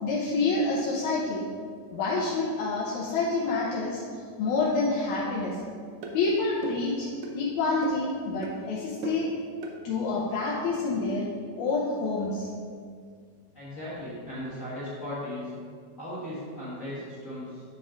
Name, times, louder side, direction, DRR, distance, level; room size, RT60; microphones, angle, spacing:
voice 1, 0.0-1.4 1.9-5.6 6.1-7.1 7.3-9.3 9.8-11.3 11.6-12.5, left 3 dB, 80° left, -5 dB, 2.2 m, -28 dB
sound 1, 5.4-5.6 6.0-6.2 6.6-6.9 7.2-7.4 7.8-8.1 8.4-8.6 9.0-9.3 9.6-9.8, right 4 dB, 70° right, 1.4 m, -36 dB
voice 2, 13.5-15.5 16.0-17.6, left 1 dB, 35° left, -9 dB, 1.7 m, -37 dB
9.0 x 4.2 x 3.8 m, 2.1 s
omnidirectional pair, 3.3 m